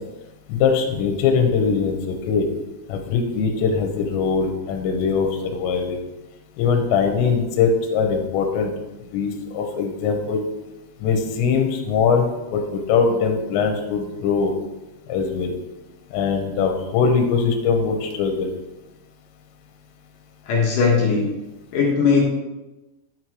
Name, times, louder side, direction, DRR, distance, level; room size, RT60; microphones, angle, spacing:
voice 1, 0.5-2.5 2.9-6.0 6.6-8.7 9.1-10.4 11.0-14.5 15.1-15.6 16.1-18.5, left 5 dB, 80° left, 3 dB, 3.0 m, -21 dB
voice 2, 20.5-21.3 21.7-22.2, left 5 dB, 65° left, -3 dB, 2.3 m, -18 dB
9.5 x 4.5 x 4.7 m, 1.0 s
omnidirectional pair, 5.3 m